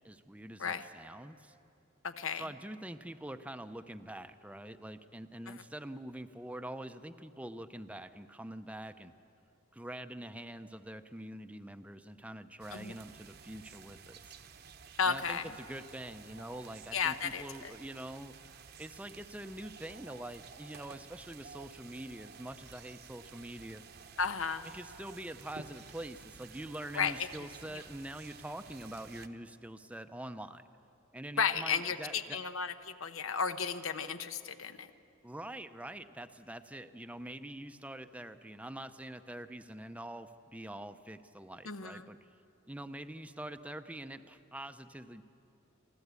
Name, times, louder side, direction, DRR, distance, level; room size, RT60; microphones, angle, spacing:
voice 1, 0.0-1.5 2.3-9.1 9.7-14.4 15.1-18.4 18.8-23.8 24.6-30.6 31.1-32.4 35.2-42.2 42.7-45.2, right 1 dB, 5° right, 10 dB, 0.5 m, -45 dB
voice 2, 2.0-2.4 12.7-12.9 15.0-15.5 16.9-17.7 24.2-24.7 26.9-27.1 31.4-34.9 41.6-42.0, left 6 dB, 85° left, 10 dB, 0.9 m, -33 dB
sound 1, 12.6-29.3, right 5 dB, 50° right, 0.8 m, -53 dB
26.0 x 13.0 x 8.2 m, 2.6 s
head